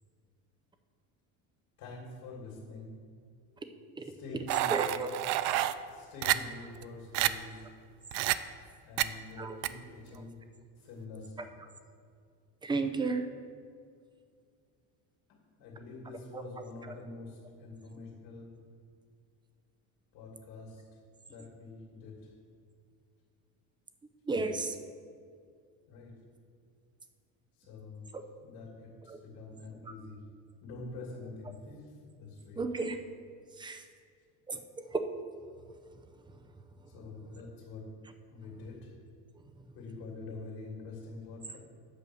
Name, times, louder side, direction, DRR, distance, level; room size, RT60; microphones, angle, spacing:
voice 1, 1.8-3.0 4.0-4.9 5.9-7.7 8.8-10.5 10.8-11.5 15.3-18.6 20.1-21.0 21.3-22.3 25.9-26.2 27.5-28.1 28.4-30.3 30.6-32.6 36.9-37.9 38.3-38.9 39.7-41.6, left 3 dB, 70° left, -1 dB, 2.7 m, -46 dB
sound 1, 4.5-5.7 6.2-6.4 6.8-6.9 7.1-7.3 8.1-8.4 9.0-9.1 9.6-9.7, right 16 dB, 85° right, 0.5 m, -28 dB
voice 2, 4.7-5.1 9.4-9.6 11.4-11.5 12.6-13.3 16.3-16.4 24.3-24.8 28.1-28.2 29.1-29.2 29.8-29.9 32.6-33.0 33.6-33.8 34.5-35.0, right 3 dB, 10° right, 8 dB, 0.5 m, -33 dB
8.5 x 6.7 x 6.3 m, 2.2 s
cardioid pair, 145°, 39 cm